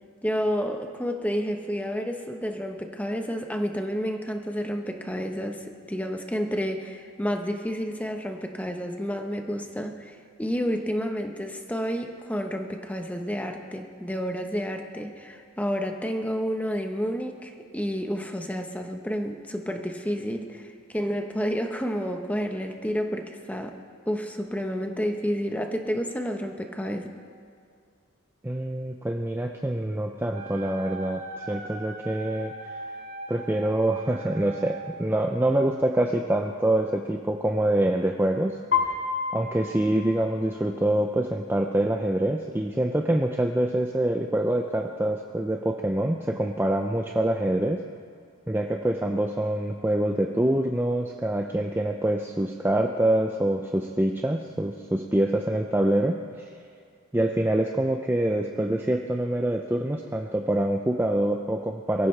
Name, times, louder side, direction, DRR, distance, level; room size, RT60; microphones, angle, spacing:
voice 1, 0.2-23.8 24.1-27.1, equal, 5° left, 4 dB, 0.9 m, -30 dB
voice 2, 28.4-32.8 33.3-38.6 39.3-47.8 48.5-56.5 57.1-62.1, right 1 dB, 10° right, 3 dB, 0.5 m, -25 dB
Wind instrument woodwind instrument, 30.3-35.1, right 3 dB, 35° right, 1.3 m, -40 dB
Piano, 38.7-40.8, left 6 dB, 60° left, 1.8 m, -29 dB
23.0 x 14.5 x 3.3 m, 2.3 s
head